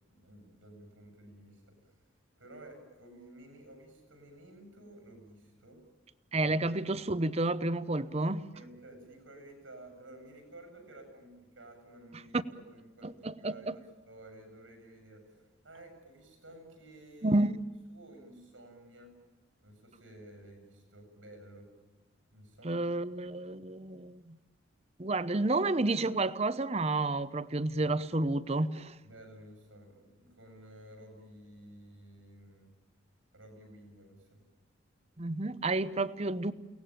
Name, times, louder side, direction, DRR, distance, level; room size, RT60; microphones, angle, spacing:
voice 1, 0.1-2.0 2.4-5.8 6.4-6.6 8.5-17.4 17.9-19.1 19.6-21.7 22.3-22.9 29.0-32.7 33.3-34.4, right 1 dB, 90° right, 7.5 m, -53 dB
voice 2, 6.3-8.5 12.3-12.4 13.0-13.7 17.2-17.6 22.6-24.4 25.0-28.9 35.2-36.5, right 2 dB, 35° right, 0.8 m, -30 dB
30.0 x 18.5 x 9.1 m
head